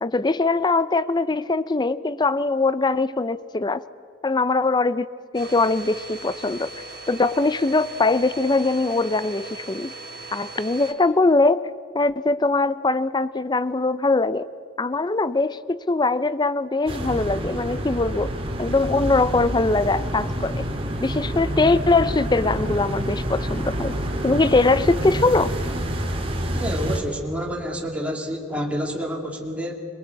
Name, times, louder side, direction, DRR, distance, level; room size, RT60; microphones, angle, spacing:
voice 1, 0.0-3.8 4.2-5.1 5.3-6.7 7.1-9.9 10.3-11.7 11.9-14.5 14.8-18.3 18.6-20.7 21.0-23.9 24.2-25.5, left 3 dB, 20° left, 15 dB, 0.5 m, -21 dB
Domestic sounds home sounds, 5.3-10.9, right 3 dB, 55° right, 2.5 m, -39 dB
sound 1, 16.9-27.0, equal, 30° right, 2.1 m, -28 dB
voice 2, 26.5-29.9, equal, 5° right, 0 dB, 2.4 m, -29 dB
22.0 x 21.5 x 8.2 m, 2.3 s
head